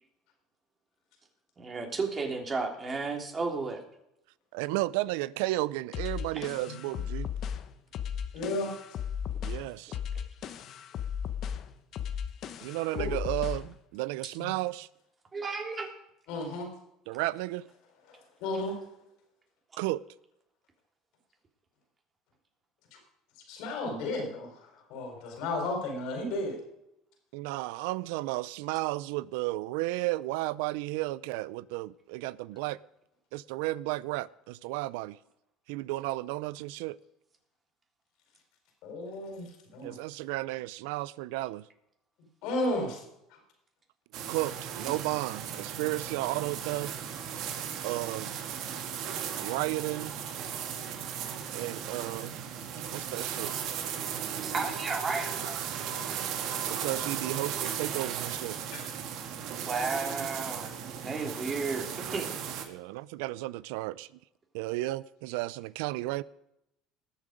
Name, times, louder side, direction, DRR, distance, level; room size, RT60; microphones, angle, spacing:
voice 1, 1.6-3.8 6.3-6.4 15.3-15.9 54.4-55.7 59.6-60.7 61.0-62.3, right 4 dB, 30° right, 3.2 m, -33 dB
voice 2, 4.5-7.3 9.4-10.0 12.6-14.9 17.1-17.6 19.8-20.0 27.3-32.8 33.3-35.2 35.7-37.0 39.8-41.6 44.3-47.0 47.8-48.3 49.4-50.2 51.5-52.3 52.8-53.5 56.0-56.1 56.7-58.6 61.1-61.3 62.7-64.1 64.5-66.2, right 18 dB, 80° right, 0.4 m, -33 dB
sound 1, 5.9-13.7, left 8 dB, 55° left, 1.0 m, -36 dB
voice 3, 8.3-8.7 13.0-13.1 14.4-14.5 16.3-16.7 18.1-18.8 22.9-23.0 23.5-26.6 38.8-40.0 42.4-43.0 43.3-43.4 58.7-58.8, left 2 dB, 70° left, 4.3 m, -34 dB
sound 2, 44.1-62.7, right 8 dB, 65° right, 1.6 m, -36 dB
20.0 x 7.3 x 5.1 m
supercardioid pair, 95°, 0 cm